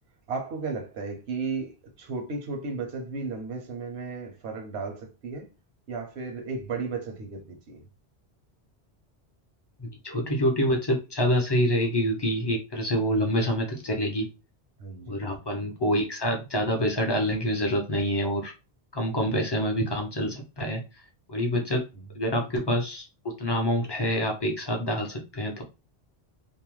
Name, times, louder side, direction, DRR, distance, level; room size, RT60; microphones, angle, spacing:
voice 1, 0.3-5.5 5.9-7.8 14.8-15.3 21.9-22.0, right 4 dB, 85° right, 1.0 m, -34 dB
voice 2, 9.8-14.3 15.1-18.5 18.9-20.8 21.3-21.8 22.1-23.1 23.4-25.6, equal, 35° left, 0.4 m, -26 dB
2.6 x 2.1 x 3.0 m
omnidirectional pair, 1.1 m